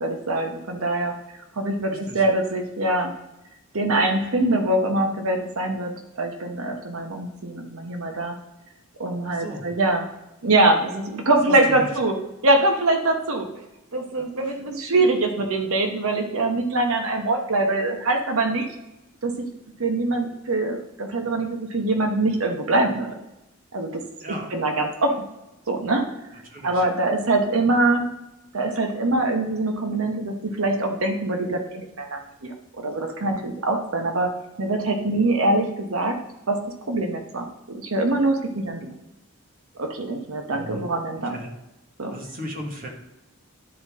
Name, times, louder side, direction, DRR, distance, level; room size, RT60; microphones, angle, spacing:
voice 1, 0.0-3.1 3.7-8.4 9.0-10.1 10.4-12.1 12.4-13.5 13.9-18.7 19.2-19.3 19.8-23.1 23.7-24.0 24.5-25.2 25.7-26.1 26.6-28.1 28.5-34.3 34.6-36.2 36.5-36.6 36.9-38.9 39.8-41.3 42.0-42.1, right 2 dB, 75° right, 4 dB, 1.0 m, -23 dB
voice 2, 1.9-2.2 9.3-9.6 11.5-11.9 14.1-14.6 24.2-24.5 26.4-26.8 40.5-40.9 41.2-41.5 42.1-42.9, equal, 40° right, 0 dB, 1.6 m, -36 dB
11.5 x 4.2 x 3.6 m, 0.91 s
head